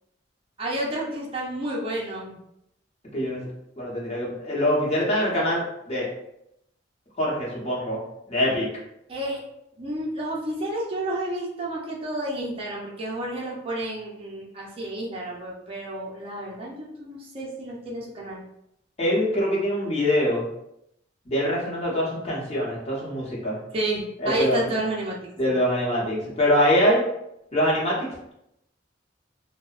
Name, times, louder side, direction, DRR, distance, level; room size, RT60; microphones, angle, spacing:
voice 1, 0.6-2.4 9.1-9.4 9.8-18.4 23.7-25.2 25.5-25.6, right 1 dB, 30° right, -4 dB, 0.5 m, -30 dB
voice 2, 3.1-3.5 3.8-6.1 7.2-8.0 8.3-8.7 19.0-20.4 21.3-23.6 24.2-24.7 25.4-27.0 27.5-28.3, equal, 35° left, -5 dB, 0.8 m, -24 dB
2.6 x 2.0 x 2.4 m, 0.79 s
head